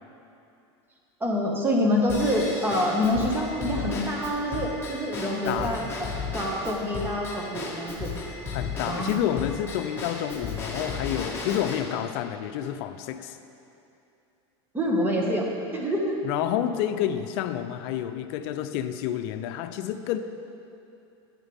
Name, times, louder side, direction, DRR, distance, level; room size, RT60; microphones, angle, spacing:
voice 1, 1.2-8.1 8.9-9.2 14.7-16.2, equal, 15° right, -1 dB, 1.8 m, -26 dB
Drum kit / Drum / Bell, 2.1-11.8, left 4 dB, 15° left, 1.9 m, -35 dB
voice 2, 5.5-6.0 8.5-13.4 16.2-20.2, left 10 dB, 60° left, 9 dB, 0.6 m, -29 dB
13.0 x 9.8 x 3.6 m, 2.7 s
supercardioid pair, 125°, 14 cm